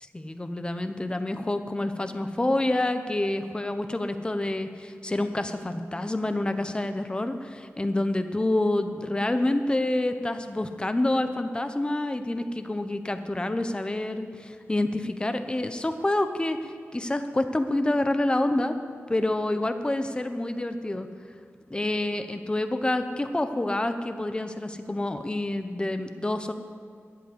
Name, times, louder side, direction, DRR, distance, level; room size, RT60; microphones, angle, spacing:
voice 1, 0.1-16.6 16.9-18.7 19.1-21.1 21.7-26.5, left 1 dB, 20° left, 8 dB, 0.8 m, -27 dB
12.5 x 8.2 x 7.9 m, 2.1 s
wide cardioid pair, 115°, 5 cm